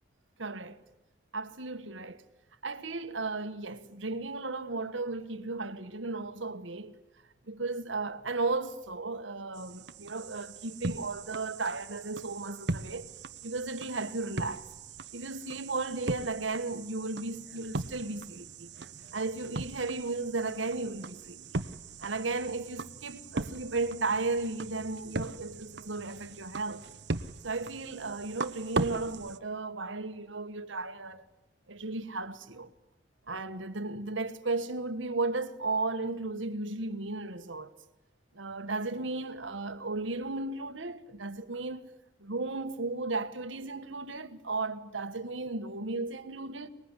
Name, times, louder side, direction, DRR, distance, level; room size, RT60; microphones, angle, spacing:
voice 1, 0.4-0.8 1.3-2.2 2.6-6.9 7.5-13.1 13.4-14.7 15.1-18.7 19.1-21.5 22.0-26.8 27.4-31.2 31.7-32.7 33.3-37.7 38.3-41.9 42.2-46.7, right 3 dB, 85° right, 1.6 m, -35 dB
sound 1, 9.5-29.4, right 3 dB, 65° right, 1.0 m, -39 dB
24.5 x 21.5 x 9.9 m
head